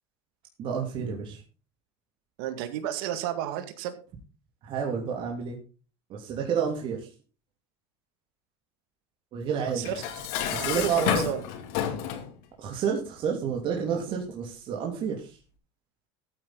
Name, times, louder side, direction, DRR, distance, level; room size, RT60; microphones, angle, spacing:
voice 1, 0.6-1.4 4.6-5.6 6.1-7.1 9.3-9.9 10.5-11.3 12.6-15.4, right 7 dB, 40° right, 0 dB, 3.0 m, -30 dB
voice 2, 2.4-4.0 9.7-10.0 10.6-11.4, right 11 dB, 70° right, 9 dB, 2.1 m, -32 dB
Dishes pots and pans, 9.8-12.3, left 9 dB, 65° left, 2.9 m, -30 dB
14.5 x 9.0 x 4.0 m, 0.34 s
supercardioid pair, 140°, 13 cm